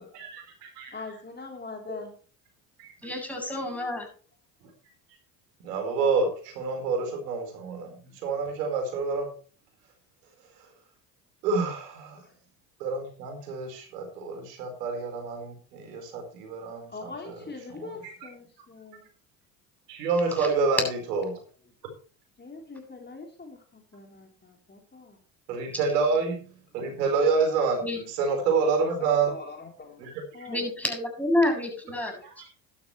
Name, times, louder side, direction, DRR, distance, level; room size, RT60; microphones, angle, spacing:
voice 1, 0.1-0.9 2.8-2.9 5.6-9.3 11.4-12.2 12.8-17.4 17.7-18.1 19.9-21.4 25.5-26.4 26.7-29.3 30.0-30.5 32.3-32.5, right 4 dB, 75° right, 4 dB, 4.6 m, -28 dB
voice 2, 0.9-2.1 12.2-12.3 16.9-19.0 22.4-25.2 29.0-30.0 30.3-30.7 31.4-31.6 32.0-32.1, left 3 dB, 20° left, 2 dB, 3.7 m, -42 dB
voice 3, 3.0-4.1 27.8-28.0 30.5-32.2, left 1 dB, 5° left, 2 dB, 7.9 m, -28 dB
13.0 x 13.0 x 3.2 m, 0.37 s
hypercardioid pair, 70°, 48 cm